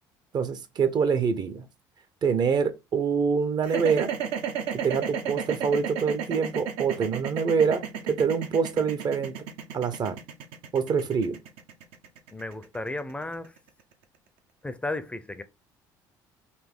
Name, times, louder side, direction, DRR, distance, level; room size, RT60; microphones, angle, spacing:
voice 1, 0.3-1.7 2.2-4.1 4.7-9.5 9.7-10.2 10.7-11.4, right 6 dB, 45° right, 0.7 m, -25 dB
sound 1, 3.6-13.8, right 8 dB, 80° right, 0.8 m, -33 dB
voice 2, 12.3-13.5 14.6-15.4, left 2 dB, 10° left, 0.5 m, -34 dB
4.1 x 2.6 x 3.6 m
supercardioid pair, 85°, 10 cm